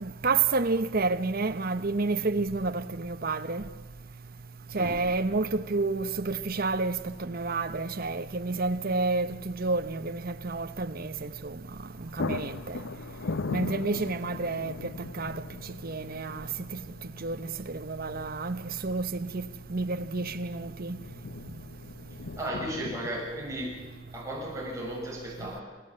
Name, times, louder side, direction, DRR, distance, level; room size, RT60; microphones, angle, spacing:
voice 1, 0.0-3.6 4.7-11.6 12.0-12.8 13.5-14.7 15.1-15.3 15.8-16.5 17.2-19.4 19.7-21.0, right 3 dB, 50° right, 1.0 m, -30 dB
sound 1, 7.0-7.3 7.6-7.7 11.4-11.6 11.9-23.3, left 3 dB, 65° left, 0.7 m, -40 dB
voice 2, 22.4-23.8 24.1-25.6, right 1 dB, 15° right, 7.1 m, -35 dB
27.5 x 15.5 x 8.7 m
head